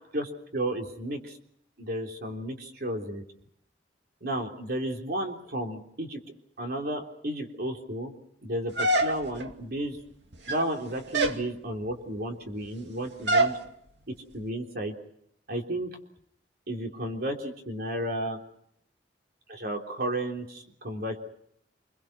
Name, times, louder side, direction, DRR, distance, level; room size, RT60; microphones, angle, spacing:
voice 1, 0.1-1.4 1.8-3.2 4.2-6.2 6.6-8.1 8.4-10.0 10.5-13.5 14.3-14.9 15.5-15.9 16.7-18.4 19.5-21.2, right 1 dB, 60° right, 2 dB, 3.5 m, -33 dB
sound 1, 8.8-9.5 10.3-10.8 11.1-11.4 13.3-13.6, right 1 dB, 90° right, 2.4 m, -25 dB
27.5 x 22.5 x 6.1 m, 0.74 s
head